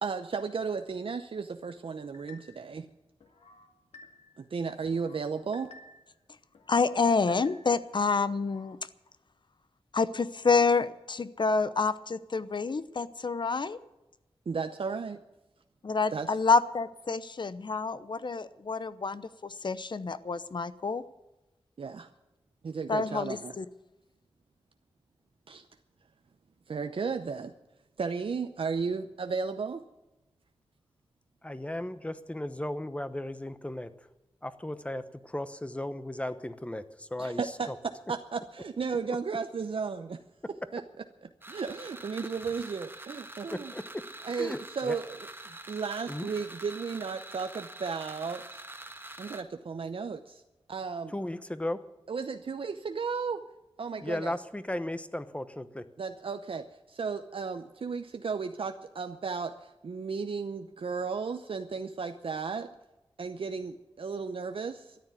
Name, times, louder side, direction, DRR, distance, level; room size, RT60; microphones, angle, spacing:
voice 1, 0.0-2.9 4.4-5.7 14.5-15.2 16.1-16.4 21.8-22.1 22.6-23.5 25.5-25.7 26.7-27.5 28.0-29.8 37.2-37.7 38.1-40.2 40.7-40.8 41.5-43.7 44.2-45.2 45.5-48.6 49.2-50.4 50.7-51.1 52.1-53.4 53.8-54.3 56.0-62.7 63.2-65.0, right 5 dB, 65° right, 8 dB, 0.7 m, -34 dB
sound 1, 2.1-2.7 3.2-4.4 4.8-6.1 6.5-7.9 8.3-8.8, left 3 dB, 90° left, 2.0 m, -55 dB
voice 2, 6.7-8.8 9.9-13.8 15.8-21.0 22.9-23.7, left 4 dB, 50° left, 15 dB, 0.8 m, -28 dB
voice 3, 31.4-33.9 34.4-37.4 37.7-37.8 43.7-43.8 44.4-45.0 46.1-46.3 51.1-51.8 54.0-55.8, left 1 dB, 10° left, 12 dB, 1.0 m, -35 dB
sound 2, 41.4-49.4, right 2 dB, 20° right, 1.4 m, -45 dB
13.5 x 9.9 x 9.3 m, 0.99 s
wide cardioid pair, 85°, 10 cm